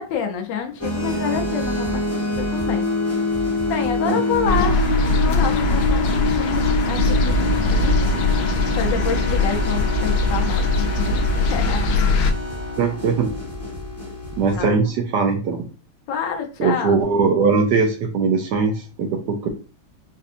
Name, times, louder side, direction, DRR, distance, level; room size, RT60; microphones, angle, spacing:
voice 1, 0.0-2.9 3.6-4.8 5.2-7.9 8.8-12.0 14.5-14.7 16.1-16.9, left 7 dB, 70° left, 3 dB, 1.3 m, -28 dB
sound 1, 0.8-14.6, left 2 dB, 10° left, 0.8 m, -25 dB
sound 2, 4.4-12.3, left 2 dB, 90° left, 1.4 m, -21 dB
voice 2, 12.8-13.3 14.4-15.6 16.6-19.4, right 5 dB, 75° right, 4 dB, 1.1 m, -20 dB
4.1 x 2.6 x 2.5 m, 0.35 s
omnidirectional pair, 2.1 m